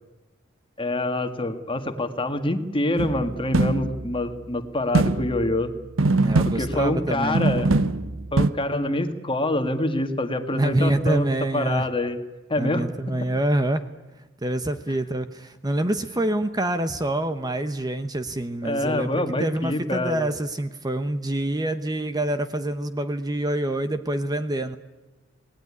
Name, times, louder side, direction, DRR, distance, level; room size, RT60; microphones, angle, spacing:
voice 1, 0.8-5.7 6.6-7.7 8.3-12.2 12.5-12.9 18.6-20.3, left 1 dB, 25° left, 8 dB, 1.9 m, -26 dB
sound 1, 3.0-4.2 4.9-5.6 6.0-7.1 7.3-8.5, right 2 dB, 80° right, 0.9 m, -23 dB
voice 2, 6.1-7.4 10.5-11.9 12.6-13.8 14.4-24.8, right 1 dB, 20° right, 10 dB, 1.0 m, -26 dB
27.0 x 19.0 x 9.9 m, 1.1 s
head